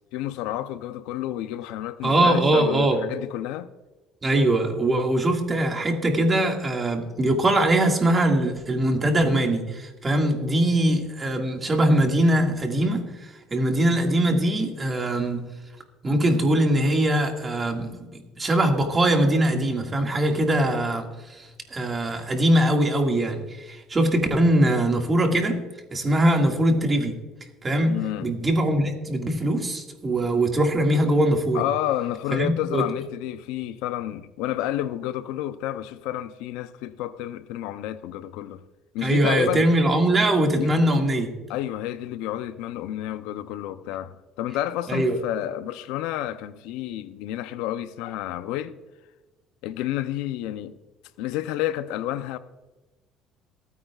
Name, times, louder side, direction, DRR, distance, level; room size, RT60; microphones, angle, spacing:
voice 1, 0.1-3.7 27.8-28.3 31.5-38.6 38.9-39.7 40.5-40.8 41.5-48.8 49.6-50.7 51.2-52.4, left 13 dB, 85° left, 0.6 m, -30 dB
voice 2, 2.0-3.0 4.2-15.4 16.0-25.6 25.9-27.1 27.6-31.6 32.3-32.8 39.0-41.3 44.9-45.2, right 1 dB, 20° right, 2.0 m, -22 dB
27.0 x 9.3 x 2.4 m
cardioid pair, 130°, 0 cm